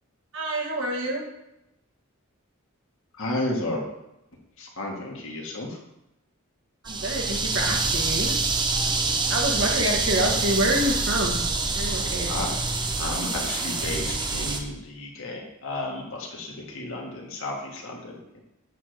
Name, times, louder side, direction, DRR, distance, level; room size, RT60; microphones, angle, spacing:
voice 1, 0.3-1.2 6.8-8.6 9.3-11.4 11.7-12.3, right 1 dB, 60° right, 0 dB, 1.7 m, -27 dB
voice 2, 3.2-3.8 4.6-5.8 8.9-9.5 12.3-12.5 13.0-18.4, left 2 dB, 65° left, -1 dB, 1.8 m, -33 dB
sound 1, 6.9-14.6, right 3 dB, 20° right, 0.8 m, -26 dB
8.5 x 3.6 x 6.5 m, 0.89 s
head